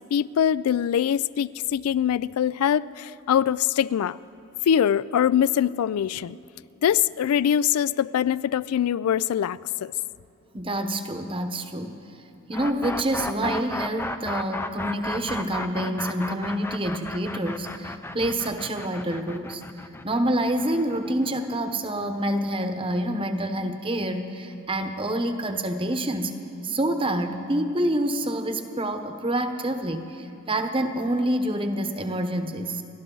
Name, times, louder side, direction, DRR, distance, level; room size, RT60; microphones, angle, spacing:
voice 1, 0.0-4.2 4.7-6.4 6.8-9.9, left 9 dB, 90° left, 19 dB, 0.3 m, -23 dB
voice 2, 10.5-11.9 12.5-19.6 20.0-26.3 26.6-32.8, right 1 dB, 25° right, 7 dB, 0.9 m, -27 dB
sound 1, 12.5-22.4, left 2 dB, 10° left, 0.4 m, -34 dB
29.5 x 12.5 x 3.9 m, 2.8 s
head